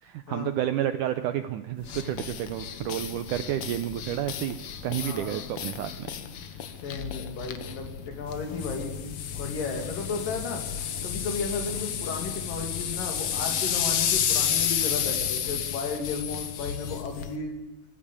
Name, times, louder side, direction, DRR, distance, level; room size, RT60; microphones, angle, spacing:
voice 1, 0.0-6.1, right 12 dB, 75° right, 10 dB, 1.9 m, -30 dB
sound 1, 1.8-17.4, left 9 dB, 80° left, 1.3 m, -31 dB
voice 2, 5.0-5.4 6.8-9.0 9.4-10.6 11.0-17.5, left 4 dB, 60° left, 5 dB, 4.2 m, -34 dB
24.5 x 14.5 x 8.6 m, 1.2 s
omnidirectional pair, 4.5 m